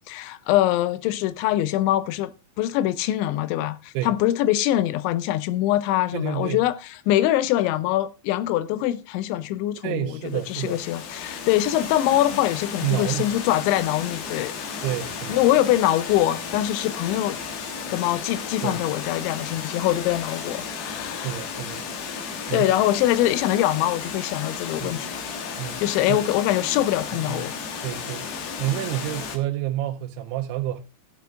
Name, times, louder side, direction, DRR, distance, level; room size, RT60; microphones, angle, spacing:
voice 1, 0.1-2.3 2.6-6.8 7.1-14.5 15.3-17.4 17.9-21.4 22.5-25.1 25.8-27.6, left 14 dB, 85° left, 3.0 m, -23 dB
voice 2, 6.1-6.6 9.8-10.8 12.8-13.3 14.8-15.5 18.6-18.8 21.2-21.9 22.5-22.7 24.8-25.0 25.6-25.8 26.1-26.2 27.1-27.5 27.8-28.3 28.6-30.8, right 13 dB, 85° right, 3.1 m, -29 dB
Water, 10.2-29.4, left 6 dB, 65° left, 3.0 m, -34 dB
14.5 x 7.5 x 3.6 m
omnidirectional pair, 5.2 m